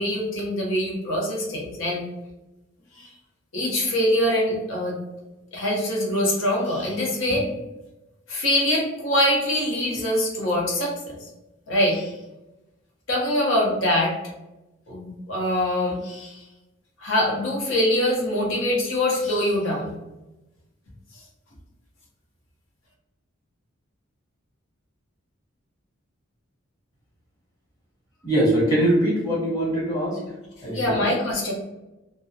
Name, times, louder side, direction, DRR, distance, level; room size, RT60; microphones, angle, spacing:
voice 1, 0.0-2.0 3.0-3.1 3.5-5.0 5.5-7.5 8.3-11.2 11.7-12.1 13.1-14.1 14.9-16.4 17.0-19.9 30.7-31.5, left 1 dB, 65° left, -2 dB, 0.7 m, -24 dB
voice 2, 28.2-30.2 30.6-31.0, right 1 dB, 20° left, -7 dB, 0.9 m, -22 dB
2.3 x 2.0 x 2.6 m, 1.0 s
head